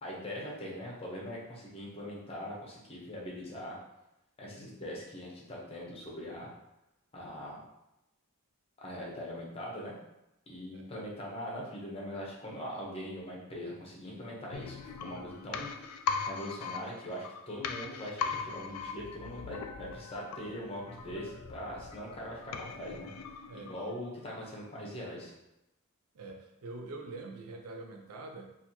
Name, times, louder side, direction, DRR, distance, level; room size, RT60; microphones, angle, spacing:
voice 1, 0.0-3.7 4.4-6.5 7.1-7.6 8.8-9.9 10.5-15.9 16.2-23.1 23.5-25.3, equal, 25° left, -3 dB, 0.8 m, -41 dB
sound 1, 14.5-24.2 24.5-24.6, left 6 dB, 85° left, 0.4 m, -40 dB
voice 2, 26.1-28.5, right 2 dB, 90° right, 3 dB, 0.5 m, -44 dB
4.2 x 2.5 x 2.9 m, 0.90 s
head